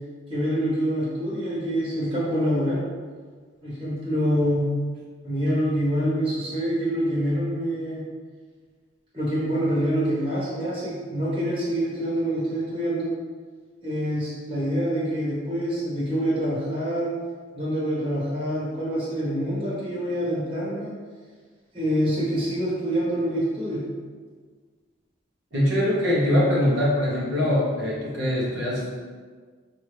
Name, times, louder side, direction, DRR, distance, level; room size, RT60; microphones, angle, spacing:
voice 1, 0.3-2.8 3.6-4.7 5.2-8.0 9.1-13.1 13.8-17.1 17.5-20.9 21.7-23.8, equal, 30° right, -8 dB, 1.3 m, -26 dB
voice 2, 25.5-28.9, left 1 dB, 70° right, -6 dB, 1.1 m, -22 dB
5.4 x 2.7 x 3.2 m, 1.5 s
head